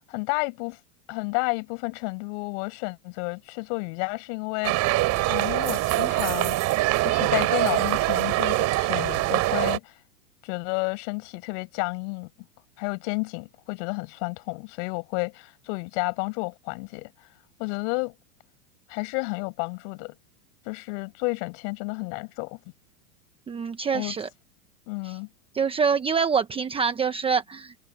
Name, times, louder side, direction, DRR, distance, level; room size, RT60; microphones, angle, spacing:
voice 1, 0.1-0.8 1.1-5.0 5.3-6.6 7.0-9.9 10.4-12.3 12.8-17.3 17.6-18.1 18.9-20.1 20.6-22.6 23.9-24.2 24.9-25.3, left 34 dB, 45° left, 6.4 m, -31 dB
sound 1, 4.6-9.8, right 18 dB, 35° right, 4.4 m, -24 dB
voice 2, 23.5-24.3 25.5-27.8, right 6 dB, 10° right, 1.1 m, -25 dB
supercardioid pair, 145°, 47 cm